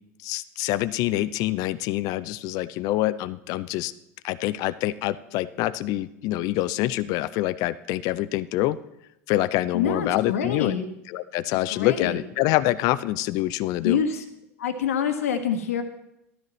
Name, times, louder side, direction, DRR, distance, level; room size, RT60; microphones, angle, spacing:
voice 1, 0.2-3.9 4.2-8.8 9.3-10.8 11.1-14.0, left 15 dB, 50° left, 16 dB, 0.5 m, -26 dB
voice 2, 9.7-10.9 11.5-12.2 13.8-14.2 14.6-15.8, left 7 dB, 70° left, 7 dB, 1.3 m, -26 dB
13.0 x 13.0 x 3.1 m, 0.83 s
figure-of-eight pair, 80°, 8 cm